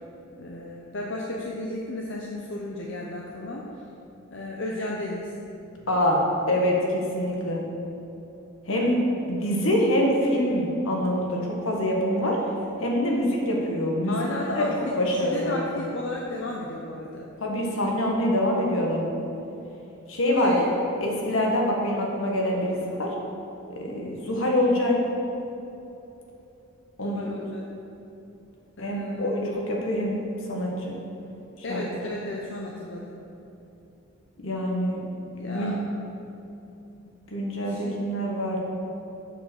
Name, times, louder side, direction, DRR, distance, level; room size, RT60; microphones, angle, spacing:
voice 1, 0.4-3.6 4.3-5.3 8.7-8.9 12.2-12.4 14.1-14.9 15.2-17.3 20.4-20.7 27.0-27.6 28.8-29.3 31.6-33.1 35.3-35.8 37.6-38.0, left 1 dB, 60° left, -2 dB, 0.8 m, -33 dB
voice 2, 5.9-6.2 6.5-7.6 8.7-9.0 9.3-12.4 12.8-14.2 14.6-14.7 14.9-15.6 17.4-19.1 20.1-20.6 21.0-23.1 23.7-25.0 27.0-27.4 28.8-31.0 31.7-31.8 34.4-35.0 35.5-35.8 37.3-38.6, left 1 dB, 75° left, -1 dB, 1.6 m, -25 dB
7.4 x 6.6 x 6.3 m, 2.9 s
head